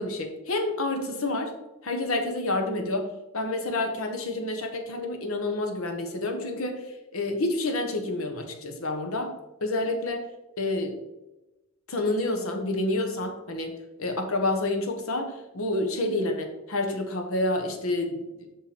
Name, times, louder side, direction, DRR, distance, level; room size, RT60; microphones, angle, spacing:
voice 1, 0.0-1.5 1.8-6.9 7.1-9.3 9.6-10.3 10.6-10.9 11.9-18.5, left 2 dB, 75° left, 5 dB, 1.2 m, -29 dB
5.9 x 5.6 x 5.2 m, 1.0 s
head